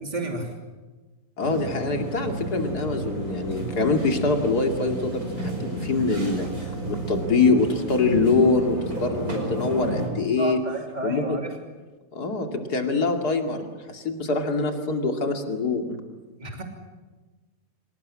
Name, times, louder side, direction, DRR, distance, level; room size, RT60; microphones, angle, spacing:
voice 1, 0.0-0.5 10.4-11.5 16.4-16.6, right 2 dB, 25° right, 3 dB, 3.1 m, -30 dB
voice 2, 1.4-6.5 6.9-10.6 11.0-11.4 12.1-16.0, left 3 dB, 75° left, 4 dB, 3.0 m, -24 dB
sound 1, 1.4-10.1, right 1 dB, 65° right, 5.9 m, -32 dB
25.5 x 19.0 x 9.8 m, 1.3 s
omnidirectional pair, 1.7 m